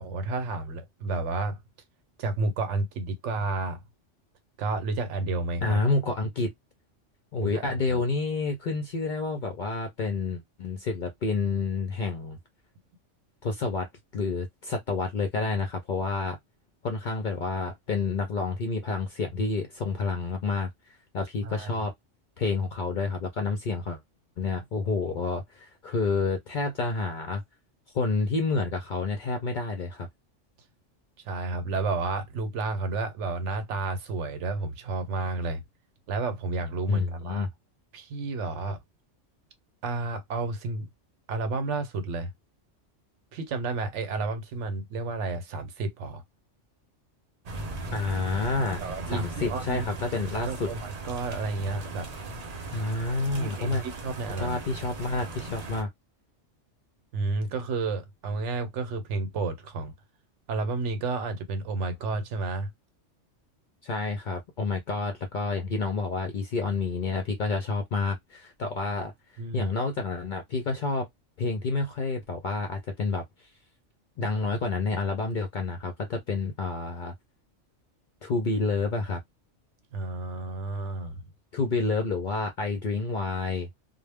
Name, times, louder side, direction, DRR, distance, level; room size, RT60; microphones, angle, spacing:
voice 1, 0.0-1.6 2.2-3.8 4.6-5.8 7.4-8.0 21.4-21.7 31.2-35.6 36.1-37.5 37.9-38.8 39.8-40.9 41.3-42.3 43.3-46.2 48.8-49.9 50.1-52.1 53.3-54.6 57.1-59.9 60.5-62.7 69.4-69.7 79.9-81.2, right 3 dB, 75° right, 1.0 m, -31 dB
voice 2, 5.6-6.5 7.3-12.4 13.4-16.4 16.8-21.9 22.4-24.0 24.4-27.4 27.9-30.1 36.9-37.5 47.9-48.8 49.1-50.7 52.7-53.8 54.4-55.9 63.8-69.1 69.5-71.1 71.4-73.5 74.2-77.1 78.2-79.2 81.5-83.7, left 3 dB, 60° left, 0.5 m, -29 dB
sound 1, 47.5-55.8, right 2 dB, 45° right, 0.5 m, -38 dB
2.1 x 2.0 x 3.3 m
omnidirectional pair, 1.3 m